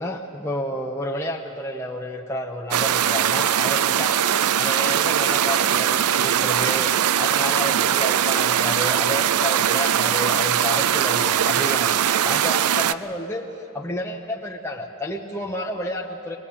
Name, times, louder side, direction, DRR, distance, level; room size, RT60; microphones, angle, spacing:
voice 1, 0.0-4.2 4.6-6.9 7.2-13.4 13.7-16.4, left 1 dB, 10° left, -2 dB, 0.9 m, -30 dB
sound 1, 2.7-12.9, right 10 dB, 90° right, 0.5 m, -21 dB
22.0 x 20.0 x 8.6 m, 2.9 s
head